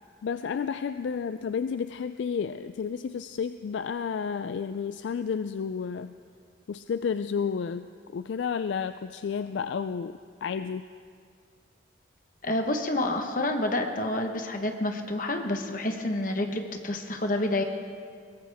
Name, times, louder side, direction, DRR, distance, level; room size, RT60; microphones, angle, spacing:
voice 1, 0.2-6.1 6.7-7.9 8.1-10.8, left 6 dB, 70° left, 11 dB, 0.3 m, -31 dB
voice 2, 12.4-17.6, left 1 dB, 45° left, 5 dB, 1.2 m, -28 dB
22.0 x 18.0 x 3.5 m, 2.2 s
head